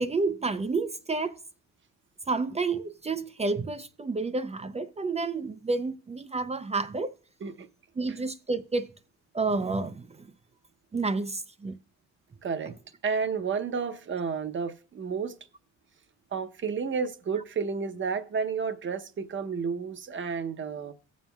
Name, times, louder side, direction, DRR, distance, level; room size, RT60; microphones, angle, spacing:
voice 1, 0.0-1.4 2.3-7.1 8.0-8.9 9.3-10.1 10.9-11.7, right 3 dB, 20° right, 0.4 m, -30 dB
voice 2, 12.4-12.7 13.0-15.3 16.3-20.9, right 5 dB, 40° right, 0.8 m, -31 dB
17.0 x 7.3 x 2.3 m
cardioid pair, 90°, 30 cm